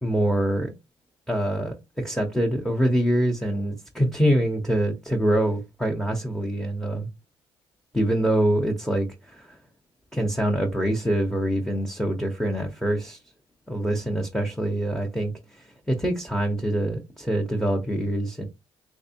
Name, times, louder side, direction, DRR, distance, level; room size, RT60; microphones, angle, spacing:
voice 1, 0.0-0.7 1.3-7.1 7.9-9.6 10.1-13.2 13.7-18.5, right 1 dB, 5° left, 0.9 m, -25 dB
3.5 x 3.2 x 2.8 m
cardioid pair, 85°, 11 cm